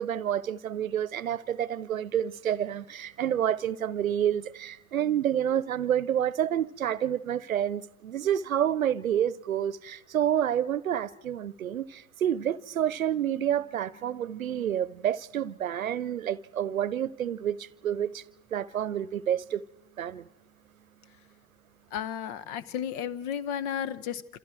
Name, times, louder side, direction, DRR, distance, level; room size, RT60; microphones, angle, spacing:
voice 1, 0.0-18.2 18.5-19.6 20.0-20.2, right 10 dB, 80° right, 0.8 m, -29 dB
voice 2, 21.9-24.4, left 9 dB, 60° left, 1.2 m, -33 dB
27.5 x 27.0 x 4.6 m
figure-of-eight pair, 65°, 41 cm